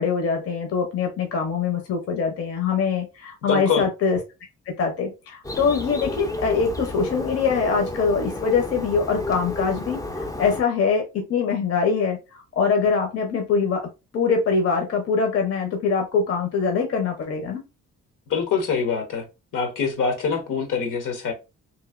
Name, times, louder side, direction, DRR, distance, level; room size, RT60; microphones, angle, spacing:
voice 1, 0.0-4.2 4.7-12.2 12.6-13.8 14.1-17.6, left 5 dB, 50° left, 0.8 m, -23 dB
voice 2, 3.5-3.9 18.3-19.2 19.5-21.3, left 5 dB, 75° left, 1.1 m, -24 dB
Bird, 5.4-10.6, left 2 dB, 10° left, 0.5 m, -31 dB
3.1 x 2.5 x 2.5 m
cardioid pair, 125°, 31 cm